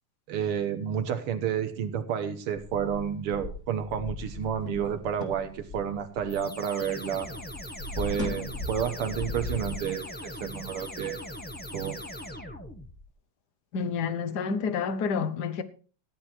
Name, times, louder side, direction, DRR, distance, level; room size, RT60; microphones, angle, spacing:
voice 1, 0.3-7.3 8.0-11.2 11.7-12.0, right 8 dB, 90° right, 2.2 m, -30 dB
sound 1, 2.6-7.0 7.2-9.8, left 2 dB, 35° left, 2.0 m, -38 dB
sound 2, 6.3-13.1, left 1 dB, 5° left, 0.8 m, -40 dB
voice 2, 13.7-15.6, left 5 dB, 55° left, 1.5 m, -29 dB
14.5 x 9.7 x 4.5 m
omnidirectional pair, 2.4 m